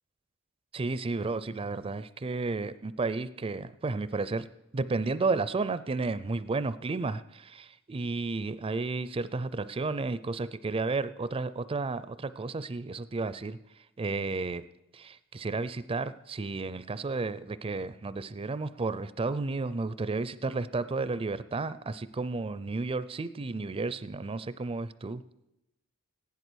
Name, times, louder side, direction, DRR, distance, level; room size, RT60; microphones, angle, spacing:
voice 1, 0.7-4.5 4.7-13.6 14.0-14.6 14.9-25.2, right 3 dB, 25° right, 15 dB, 0.4 m, -32 dB
15.5 x 10.5 x 6.3 m, 0.89 s
head